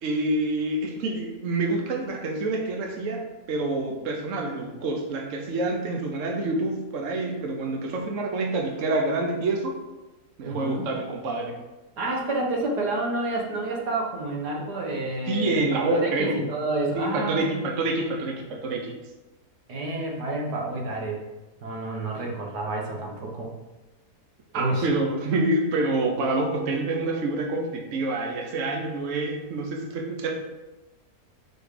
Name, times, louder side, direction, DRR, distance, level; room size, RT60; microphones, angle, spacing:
voice 1, 0.0-9.8 10.4-11.6 15.3-16.4 17.0-18.9 24.5-30.3, right 2 dB, 55° right, 2 dB, 1.2 m, -27 dB
voice 2, 10.4-10.9 12.0-18.1 19.7-21.2 21.6-23.5 24.5-24.9, right 2 dB, 85° right, -1 dB, 1.9 m, -29 dB
6.7 x 4.7 x 5.0 m, 1.1 s
omnidirectional pair, 1.7 m